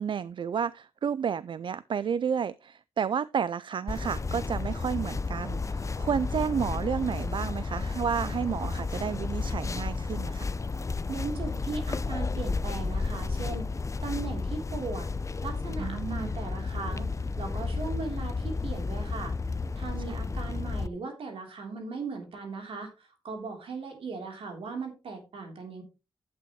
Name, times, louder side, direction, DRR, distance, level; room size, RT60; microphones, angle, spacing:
voice 1, 0.0-10.5 15.8-16.3 20.1-20.2, right 7 dB, 65° right, 0.4 m, -31 dB
sound 1, 3.9-20.9, left 4 dB, 35° left, 0.6 m, -32 dB
voice 2, 11.1-13.7 14.0-15.1 15.4-19.3 19.8-25.8, right 4 dB, 80° right, 3.4 m, -38 dB
11.5 x 8.5 x 3.1 m
cardioid pair, 50°, 9 cm